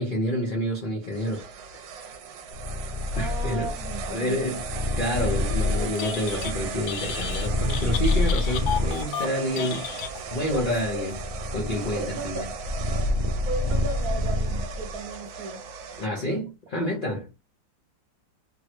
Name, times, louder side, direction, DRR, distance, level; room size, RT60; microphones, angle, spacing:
voice 1, 0.0-1.4 3.2-3.7 4.1-4.6 4.9-9.9 10.3-11.2 11.5-12.4 16.0-17.3, equal, 65° left, 0.5 m, -28 dB
sound 1, 1.0-16.1, right 6 dB, 85° right, 1.3 m, -38 dB
Purr, 2.5-9.0 9.7-14.9, left 2 dB, 45° left, 1.0 m, -28 dB
voice 2, 3.1-4.6 10.5-11.1 11.9-12.5 12.9-13.1 13.5-15.6, right 3 dB, 70° right, 0.9 m, -35 dB
Telephone, 5.8-6.6 6.8-10.5, left 8 dB, 85° left, 1.3 m, -33 dB
3.5 x 2.1 x 3.0 m
omnidirectional pair, 2.0 m